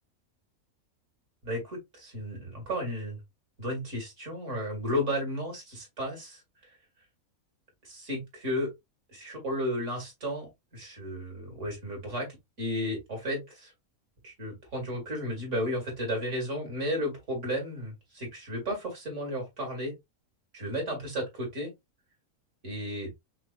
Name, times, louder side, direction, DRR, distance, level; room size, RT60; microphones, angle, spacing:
voice 1, 1.4-3.2 3.6-6.4 7.8-8.7 9.1-12.3 12.6-13.7 14.2-20.0 20.5-21.7 22.6-23.1, equal, 55° right, 2.7 m, -33 dB
5.8 x 2.6 x 2.5 m
omnidirectional pair, 1.5 m